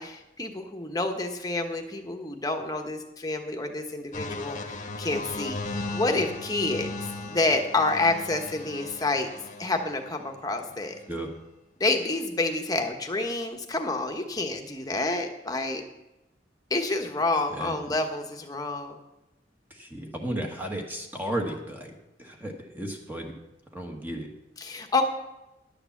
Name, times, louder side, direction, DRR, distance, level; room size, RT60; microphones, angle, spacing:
voice 1, 0.0-6.9 7.2-9.3 9.6-10.9 11.8-15.8 16.7-19.0 24.6-25.1, left 2 dB, 20° left, 4 dB, 1.1 m, -28 dB
sound 1, 4.1-10.2 10.9-11.1, left 2 dB, 40° left, 1.1 m, -37 dB
voice 2, 17.5-17.9 19.8-21.9 22.2-23.3 23.7-24.3, right 1 dB, 10° right, 1 dB, 1.4 m, -34 dB
11.0 x 6.8 x 7.2 m, 0.94 s
head